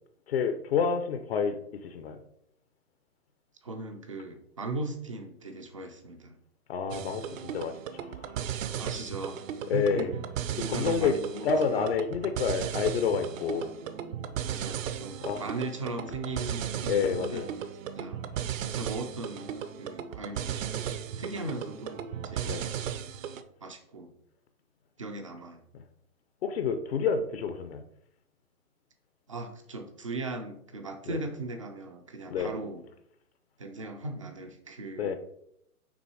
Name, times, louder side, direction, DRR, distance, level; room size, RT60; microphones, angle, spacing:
voice 1, 0.3-2.2 6.7-8.3 9.7-10.1 10.7-11.2 11.4-13.7 15.2-15.4 16.9-17.5 22.5-22.6 26.4-27.8 31.1-31.2 32.3-32.5 35.0-35.2, left 6 dB, 45° left, 8 dB, 0.6 m, -29 dB
voice 2, 3.6-6.4 7.2-7.4 8.8-9.4 9.7-10.2 10.5-11.9 14.5-17.5 18.0-18.2 18.7-20.7 21.2-23.1 23.6-24.1 25.0-25.6 29.3-32.8 33.6-35.2, right 2 dB, 25° right, 4 dB, 0.3 m, -38 dB
sound 1, 6.9-23.4, right 9 dB, 60° right, 0.7 m, -36 dB
6.1 x 3.5 x 4.7 m, 0.73 s
hypercardioid pair, 135°, 45 cm